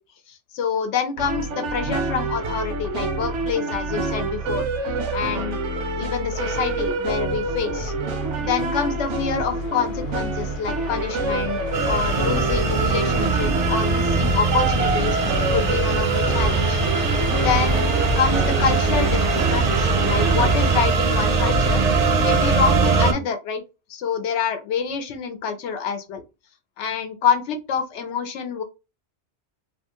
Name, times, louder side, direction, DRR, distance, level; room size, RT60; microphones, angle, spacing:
voice 1, 0.3-4.6 5.1-5.6 6.0-7.9 8.4-11.6 11.9-15.2 15.5-16.8 17.4-21.8 22.2-23.6 23.9-26.2 26.8-28.6, left 6 dB, 90° left, 0.9 m, -26 dB
sound 1, 1.2-20.5, right 2 dB, 90° right, 1.1 m, -27 dB
sound 2, 6.0-20.8, left 4 dB, 55° left, 0.7 m, -34 dB
sound 3, 11.7-23.1, right 4 dB, 55° right, 0.4 m, -21 dB
2.8 x 2.2 x 2.8 m
omnidirectional pair, 1.2 m